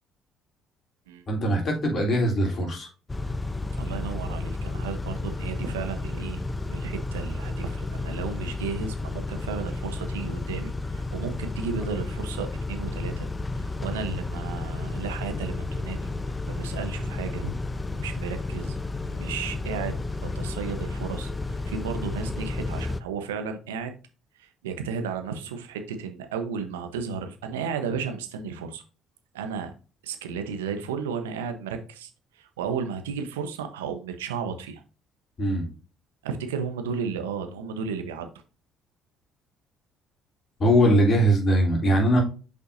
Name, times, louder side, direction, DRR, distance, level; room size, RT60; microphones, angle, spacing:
voice 1, 1.3-2.9 35.4-35.7 40.6-42.2, equal, 45° left, 0 dB, 3.3 m, -21 dB
Car / Idling / Accelerating revving vroom, 3.1-23.0, left 2 dB, 25° left, 0.7 m, -32 dB
voice 2, 3.8-6.4 6.7-16.0 16.5-17.5 17.9-18.7 19.1-20.0 20.2-23.9 24.4-28.8 29.3-29.7 30.0-32.1 32.4-34.8 36.2-38.3, right 6 dB, 85° right, 7 dB, 0.9 m, -33 dB
6.9 x 5.4 x 2.6 m, 0.35 s
hypercardioid pair, 55°, 0 cm